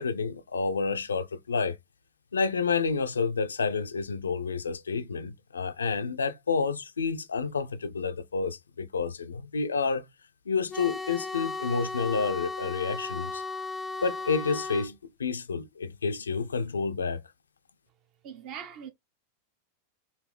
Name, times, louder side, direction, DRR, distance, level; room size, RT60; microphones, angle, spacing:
voice 1, 0.0-1.8 2.3-10.1 10.5-13.4 14.0-17.2, left 5 dB, 70° left, 0.4 m, -29 dB
sound 1, 10.7-14.9, left 3 dB, 5° left, 0.4 m, -35 dB
voice 2, 18.2-18.9, right 8 dB, 40° right, 0.8 m, -41 dB
4.0 x 2.6 x 3.2 m
figure-of-eight pair, 90°, 0 cm